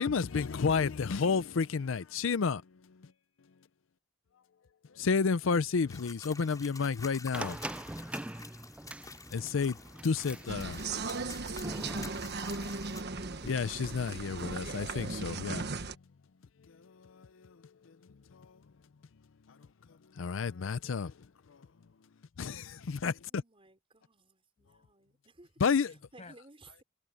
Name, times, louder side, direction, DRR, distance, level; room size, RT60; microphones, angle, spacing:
voice 1, 0.0-2.6 4.9-7.6 9.3-9.8 10.0-10.9 13.4-15.7 16.7-17.6 17.9-18.0 18.3-18.6 19.5-19.6 20.1-21.1 21.5-21.7 22.4-23.4 25.6-25.9, left 5 dB, 75° left, 0.5 m, -31 dB
sound 1, 5.9-13.0, left 4 dB, 20° left, 5.8 m, -50 dB
sound 2, 7.3-15.4, right 1 dB, 5° right, 0.3 m, -45 dB
sound 3, 10.5-15.9, right 3 dB, 55° right, 1.3 m, -37 dB
voice 2, 23.3-25.5 25.8-26.8, right 2 dB, 30° right, 5.3 m, -58 dB
voice 3, 25.9-26.4, left 3 dB, 35° left, 6.8 m, -57 dB
head